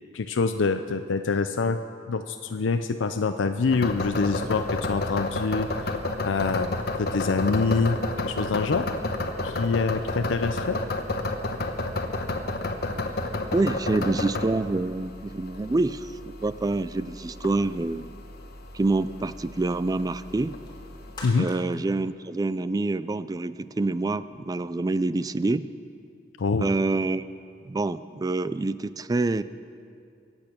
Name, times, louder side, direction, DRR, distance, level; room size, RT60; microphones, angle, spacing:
voice 1, 0.1-1.8 2.1-5.7 6.2-8.9 9.4-10.8 21.2-21.5 26.4-26.7, left 4 dB, 90° left, 8 dB, 0.5 m, -25 dB
sound 1, 3.7-21.2, left 2 dB, 55° left, 1.1 m, -31 dB
voice 2, 13.5-18.1 18.7-20.5 21.4-25.7 26.6-27.3 27.6-29.4, right 2 dB, 20° right, 15 dB, 0.3 m, -26 dB
sound 2, 20.6-23.1 23.5-23.6, left 1 dB, 25° left, 3.4 m, -45 dB
23.5 x 8.9 x 6.0 m, 2.4 s
head